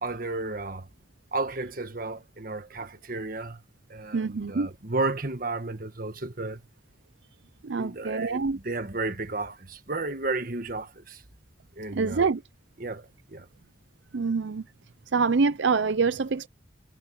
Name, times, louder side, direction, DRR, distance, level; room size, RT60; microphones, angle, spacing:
voice 1, 0.0-0.9 1.3-3.6 3.9-6.6 7.7-11.2 11.8-12.3 12.8-13.5, right 3 dB, 50° right, 1.5 m, -33 dB
voice 2, 4.1-4.7 7.6-8.6 11.9-12.4 14.1-14.6 15.1-16.5, right 4 dB, 80° right, 0.6 m, -25 dB
head